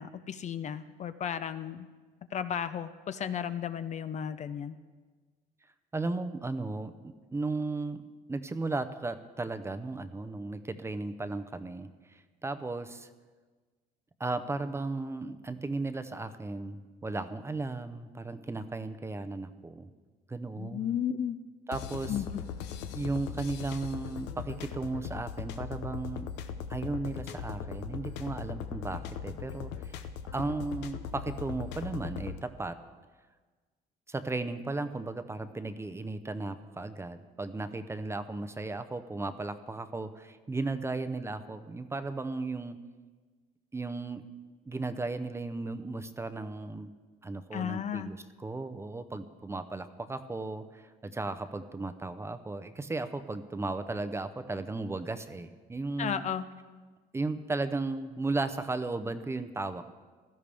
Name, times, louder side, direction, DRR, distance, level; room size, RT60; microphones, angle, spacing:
voice 1, 0.0-1.9 2.3-4.8 20.6-21.4 22.1-22.4 47.5-48.1 56.0-56.5, left 8 dB, 45° left, 12 dB, 0.5 m, -34 dB
voice 2, 5.9-8.0 8.3-13.1 14.2-19.9 20.3-21.0 21.7-22.2 22.9-26.3 26.7-30.0 30.3-32.8 34.1-42.8 43.7-44.2 44.7-46.9 47.2-56.2 57.1-59.8, right 3 dB, 15° right, 11 dB, 0.6 m, -35 dB
sound 1, 21.7-32.4, left 8 dB, 90° left, 0.7 m, -39 dB
16.0 x 12.5 x 3.5 m, 1.4 s
cardioid pair, 110°, 17 cm